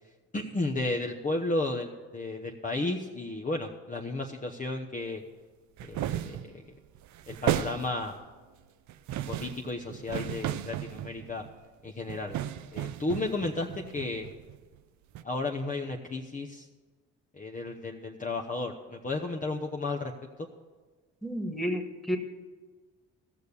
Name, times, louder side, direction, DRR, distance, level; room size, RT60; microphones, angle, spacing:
voice 1, 0.3-5.2 5.8-6.8 7.3-8.1 9.3-11.5 11.8-12.4 12.7-13.7 13.9-14.3 15.2-16.7 17.3-20.1, left 2 dB, 25° left, 1 dB, 1.0 m, -33 dB
sound 1, 5.8-6.6 7.0-8.2 8.9-11.6 12.1-14.8 15.2-15.3, right 12 dB, 70° right, 0.6 m, -35 dB
voice 2, 21.2-22.2, equal, ahead, 3 dB, 1.8 m, -31 dB
15.0 x 6.6 x 6.9 m, 1.3 s
supercardioid pair, 65°, 30 cm